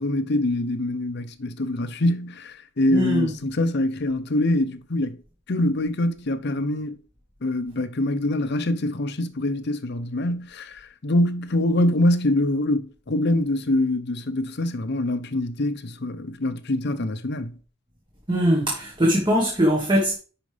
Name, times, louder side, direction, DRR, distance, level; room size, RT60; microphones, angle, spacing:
voice 1, 0.0-5.2 5.5-7.0 7.4-17.6, left 1 dB, 55° left, 0.7 m, -24 dB
voice 2, 2.9-3.3 18.3-20.2, equal, 25° right, 1.5 m, -21 dB
10.5 x 4.9 x 3.4 m
head